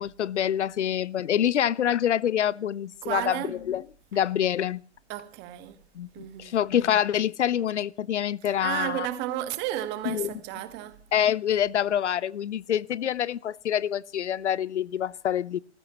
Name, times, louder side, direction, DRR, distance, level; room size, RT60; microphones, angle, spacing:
voice 1, 0.0-3.4 3.7-3.8 4.1-4.8 6.0-9.1 10.1-10.3 11.1-15.6, left 10 dB, 80° left, 0.6 m, -26 dB
voice 2, 3.0-3.6 5.1-5.9 6.1-6.7 8.4-11.0, right 14 dB, 30° right, 1.7 m, -33 dB
27.5 x 14.5 x 3.0 m
hypercardioid pair, 130°, 35 cm